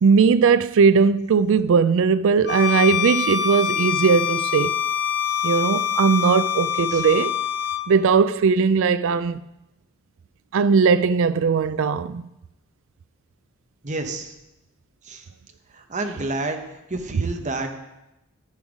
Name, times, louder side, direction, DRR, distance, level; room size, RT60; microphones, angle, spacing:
voice 1, 0.0-4.7 5.4-7.3 7.9-9.4 10.5-12.3 17.1-17.2, right 5 dB, 65° right, 0.4 m, -19 dB
Bowed string instrument, 2.5-7.9, left 8 dB, 50° left, 0.6 m, -24 dB
voice 2, 13.8-14.3 15.0-15.2 15.7-16.6 16.9-17.7, right 2 dB, 35° right, 1.0 m, -29 dB
11.0 x 7.4 x 5.0 m
head